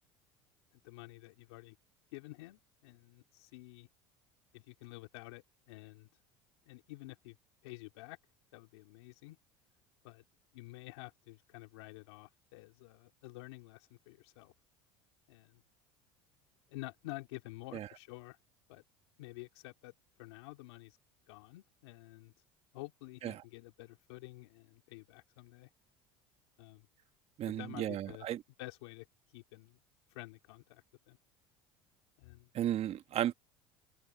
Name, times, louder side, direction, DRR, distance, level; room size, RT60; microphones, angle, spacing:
voice 1, 0.8-1.8 2.1-3.9 4.5-6.1 6.7-7.4 7.6-8.2 8.5-9.4 10.0-10.2 10.5-14.5 15.3-15.6 16.7-18.4 18.7-18.8 19.2-19.9 20.2-21.0 21.3-22.3 22.7-25.7 26.6-26.9 27.5-28.3 28.6-29.1 29.3-29.8 30.1-31.2 32.2-32.5, left 21 dB, 80° left, 2.6 m, -50 dB
voice 2, 27.4-28.4 32.5-33.3, right 11 dB, 50° right, 1.6 m, -34 dB
hypercardioid pair, 85°, 14 cm